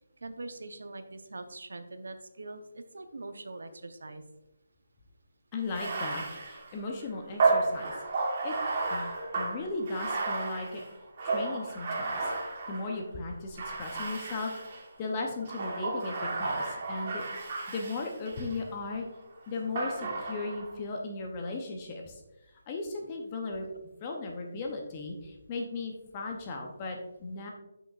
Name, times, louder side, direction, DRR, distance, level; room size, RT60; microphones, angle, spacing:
voice 1, 0.2-4.2, right 2 dB, 90° right, 9 dB, 0.7 m, -43 dB
voice 2, 5.5-8.5 8.9-9.1 9.4-10.8 11.2-12.3 12.7-17.2 17.7-19.1 19.5-22.2 22.7-23.7 24.0-27.5, left 3 dB, 20° left, 1 dB, 0.7 m, -37 dB
Bathtub (filling or washing), 5.6-13.0 13.6-14.9 15.4-18.6 19.8-20.7, right 3 dB, 35° right, 1.4 m, -32 dB
8.0 x 5.9 x 2.4 m, 0.96 s
hypercardioid pair, 170°, 0 cm